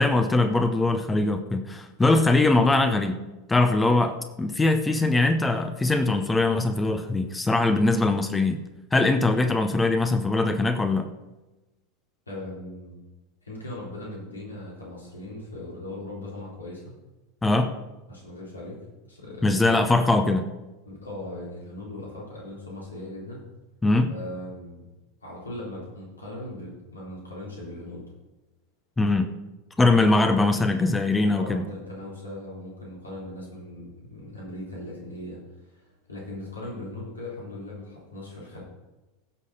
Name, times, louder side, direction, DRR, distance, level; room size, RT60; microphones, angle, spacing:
voice 1, 0.0-3.2 3.5-8.6 8.9-11.1 17.4-17.7 19.4-20.5 23.8-24.1 29.0-29.3 29.8-31.7, left 2 dB, 10° left, 7 dB, 0.8 m, -22 dB
voice 2, 12.3-13.0 13.4-16.9 18.1-18.8 19.0-19.8 20.9-23.5 24.1-24.8 25.2-28.0 29.9-30.1 31.3-38.6, left 1 dB, 80° left, -5 dB, 3.7 m, -39 dB
16.0 x 6.6 x 4.1 m, 1.1 s
figure-of-eight pair, 85°, 0 cm